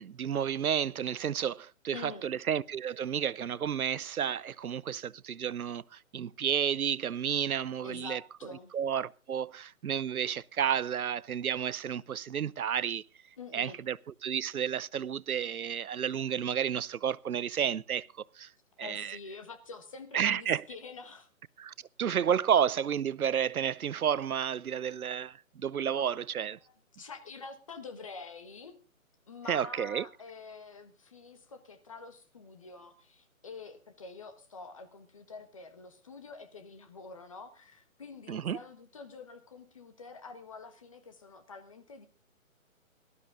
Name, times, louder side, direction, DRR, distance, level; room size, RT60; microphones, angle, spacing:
voice 1, 0.0-8.2 8.7-13.0 13.5-14.0 14.2-18.1 18.3-18.5 18.8-19.2 20.1-20.6 21.6-26.6 29.5-30.1 38.3-38.6, right 8 dB, 85° right, 0.7 m, -31 dB
voice 2, 1.9-2.2 7.8-8.7 13.4-13.8 18.8-21.3 26.0-26.2 26.6-28.8 29.3-42.1, left 4 dB, 25° left, 1.3 m, -47 dB
18.5 x 12.5 x 3.7 m
hypercardioid pair, 170°, 42 cm